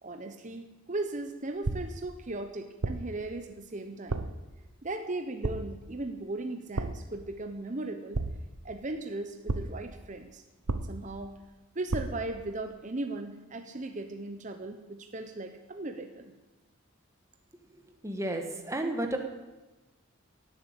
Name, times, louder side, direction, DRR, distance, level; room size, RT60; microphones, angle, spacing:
voice 1, 0.0-4.2 4.8-8.2 8.6-10.4 10.7-11.3 11.7-16.3, right 2 dB, 35° right, 6 dB, 0.9 m, -37 dB
sound 1, 1.6-2.1 2.8-3.2 4.1-4.5 5.4-5.9 6.8-7.2 8.1-8.7 9.5-9.9 10.7-11.2 11.9-12.3, right 2 dB, 80° right, 0.9 m, -33 dB
voice 2, 18.0-19.2, right 1 dB, 15° right, 4 dB, 1.5 m, -32 dB
16.5 x 8.2 x 8.1 m, 1.1 s
head